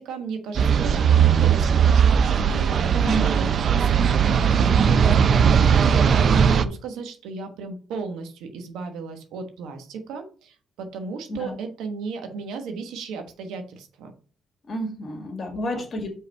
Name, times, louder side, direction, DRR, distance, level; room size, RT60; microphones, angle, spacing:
voice 1, 0.0-14.1 15.7-15.8, right 5 dB, 90° right, 6 dB, 1.1 m, -35 dB
sound 1, 0.5-6.6, right 7 dB, 55° right, 0.5 m, -18 dB
voice 2, 3.0-3.6 11.3-11.6 14.6-16.1, right 1 dB, 45° left, 3 dB, 2.0 m, -30 dB
5.5 x 4.0 x 5.3 m, 0.39 s
cardioid pair, 90°, 0 cm